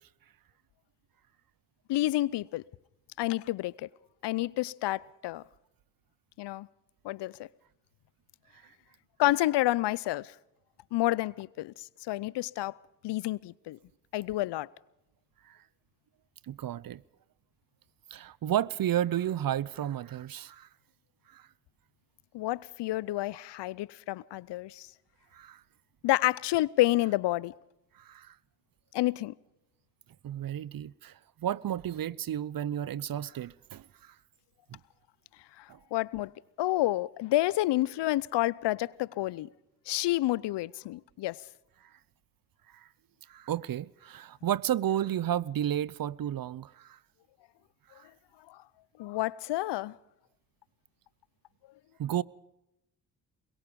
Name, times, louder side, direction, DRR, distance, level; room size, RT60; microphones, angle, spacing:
voice 1, 1.9-2.6 3.2-3.9 4.2-5.4 6.4-6.7 7.0-7.5 9.2-10.3 10.9-12.7 13.0-13.8 14.1-14.7 22.3-24.9 26.0-27.5 28.9-29.3 35.6-36.3 36.6-39.5 39.9-41.4 48.5-48.6 49.0-50.0, left 16 dB, 75° left, 0.6 m, -29 dB
voice 2, 16.5-17.0 18.1-20.7 21.3-21.5 25.3-25.6 28.0-28.4 30.2-34.1 34.7-34.8 35.7-35.8 42.7-42.9 43.3-47.0 48.0-48.1 52.0-52.2, right 11 dB, 55° right, 0.7 m, -32 dB
22.5 x 22.0 x 5.3 m
supercardioid pair, 45°, 42 cm